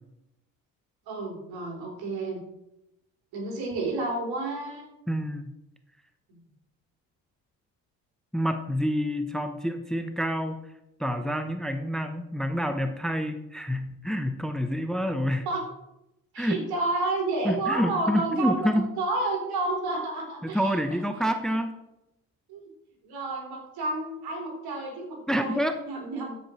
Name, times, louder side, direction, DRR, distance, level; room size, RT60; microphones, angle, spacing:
voice 1, 1.1-2.4 3.3-4.9 6.3-6.4 14.7-14.8 15.5-15.6 16.3-18.7 19.0-21.0 21.5-21.6 22.5-22.6 23.0-26.4, right 2 dB, 70° right, 0 dB, 3.4 m, -31 dB
voice 2, 5.1-5.5 8.3-10.6 11.0-15.5 16.4-16.6 17.4-18.9 20.4-21.7 25.3-25.7, equal, ahead, 8 dB, 0.9 m, -27 dB
13.0 x 5.3 x 4.4 m, 0.88 s
hypercardioid pair, 60°, 38 cm